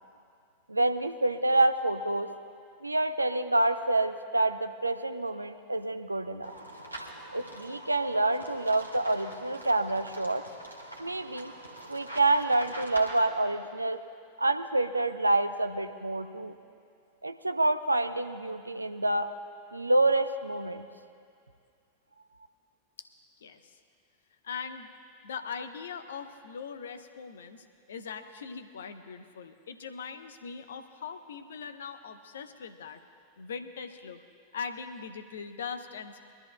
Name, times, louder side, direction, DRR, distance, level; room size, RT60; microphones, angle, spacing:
voice 1, 0.7-2.3 2.8-6.5 7.3-10.4 11.0-11.5 11.9-14.0 14.4-16.5 17.2-19.3 19.7-20.9, right 2 dB, 85° right, 9 dB, 0.5 m, -27 dB
sound 1, 6.4-13.2, right 1 dB, 90° left, 1.4 m, -44 dB
voice 2, 24.4-24.9 25.2-33.0 33.4-34.2 34.5-36.3, left 6 dB, 65° left, 9 dB, 0.7 m, -41 dB
24.0 x 12.5 x 2.2 m, 2.3 s
figure-of-eight pair, 90°, 0 cm